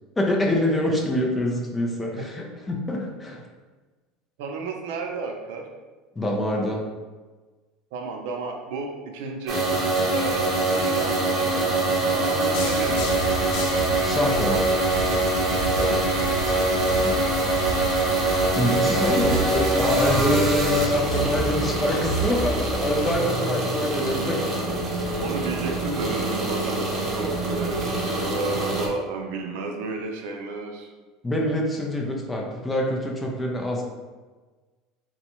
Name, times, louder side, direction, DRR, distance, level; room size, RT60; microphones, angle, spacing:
voice 1, 0.2-3.4 6.2-6.8 14.0-14.7 17.0-17.3 18.6-24.4 31.2-33.8, left 1 dB, 15° left, 0 dB, 0.6 m, -25 dB
voice 2, 4.4-5.7 7.9-9.6 10.1-10.5 10.7-13.2 15.8-16.1 25.2-30.9, right 3 dB, 80° right, 2 dB, 0.5 m, -32 dB
sound 1, 9.5-28.9, right 2 dB, 35° right, 0.8 m, -24 dB
sound 2, 12.5-23.2, right 1 dB, 70° left, 0.5 m, -32 dB
3.8 x 2.3 x 3.0 m, 1.3 s
supercardioid pair, 120°, 0 cm